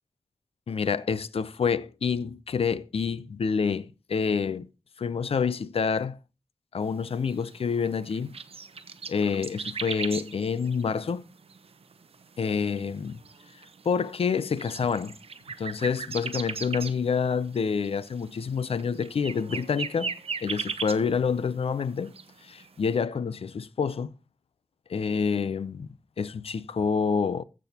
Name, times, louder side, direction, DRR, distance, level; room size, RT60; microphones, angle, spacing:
voice 1, 0.7-4.7 5.0-6.2 6.7-8.4 9.1-11.2 12.4-13.2 13.8-15.2 15.6-20.1 20.4-22.1 22.4-24.1 24.9-25.9 26.2-27.4, left 6 dB, 90° left, 0.6 m, -27 dB
sound 1, 6.9-21.5 21.8-22.7, right 5 dB, 85° right, 0.8 m, -38 dB
15.0 x 6.2 x 2.9 m
cardioid pair, 40°, 10 cm